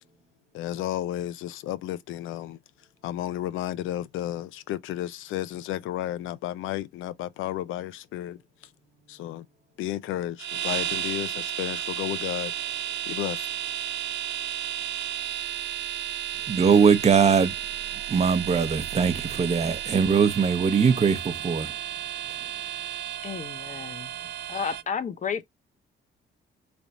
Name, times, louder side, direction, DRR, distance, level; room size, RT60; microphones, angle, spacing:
voice 1, 0.5-2.6 3.0-8.4 9.1-9.5 9.8-12.5 13.1-13.5, left 13 dB, 85° left, 0.4 m, -32 dB
sound 1, 10.4-24.8, right 11 dB, 60° right, 0.4 m, -33 dB
voice 2, 16.5-17.5 18.1-21.7, right 6 dB, 35° right, 0.7 m, -21 dB
voice 3, 23.2-24.1 24.5-25.4, left 6 dB, 40° left, 0.7 m, -32 dB
3.4 x 2.4 x 4.0 m
cardioid pair, 90°, 20 cm